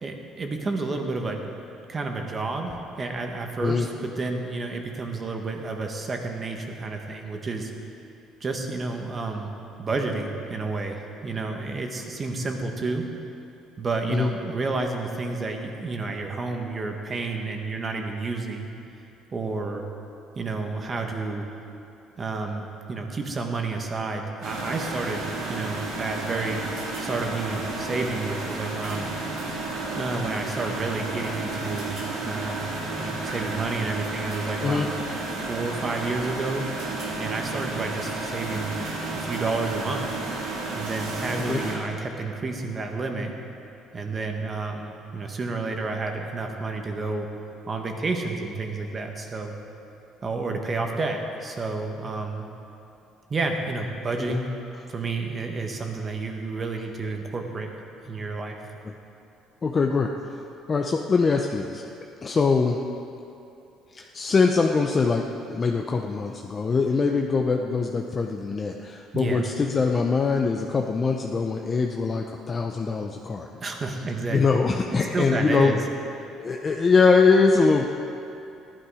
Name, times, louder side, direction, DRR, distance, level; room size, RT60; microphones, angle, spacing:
voice 1, 0.0-1.6 1.9-7.7 8.4-9.5 9.8-13.0 13.8-18.7 19.3-19.8 20.4-21.5 22.2-26.7 27.0-29.1 29.9-31.9 32.2-32.7 33.0-34.9 35.4-36.7 37.2-38.7 39.1-40.1 40.7-43.3 43.9-47.3 47.7-49.5 50.2-52.5 53.3-54.5 54.9-57.7 58.0-58.6 69.1-69.4 73.6-74.4 75.1-75.8, right 3 dB, 25° right, 3 dB, 1.4 m, -30 dB
sound 1, 24.4-41.8, right 2 dB, 85° right, 3.4 m, -32 dB
voice 2, 59.6-60.4 60.7-61.9 62.2-62.8 63.9-65.2 65.5-73.5 74.3-75.8 76.4-77.8, left 4 dB, 25° left, 2 dB, 0.6 m, -23 dB
15.5 x 11.5 x 5.0 m, 2.8 s
cardioid pair, 135°, 0 cm